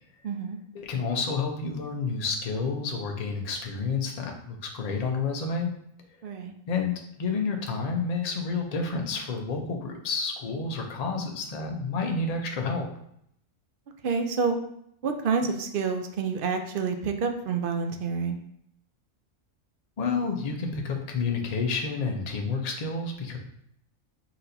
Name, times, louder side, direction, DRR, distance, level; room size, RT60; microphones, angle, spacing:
voice 1, 0.2-0.6 6.2-6.6 14.0-14.5 15.0-18.4, right 5 dB, 65° right, 5 dB, 0.5 m, -28 dB
voice 2, 0.7-5.7 6.7-12.9 20.0-23.4, left 4 dB, 45° left, 2 dB, 0.5 m, -30 dB
4.2 x 4.0 x 2.7 m, 0.72 s
omnidirectional pair, 1.4 m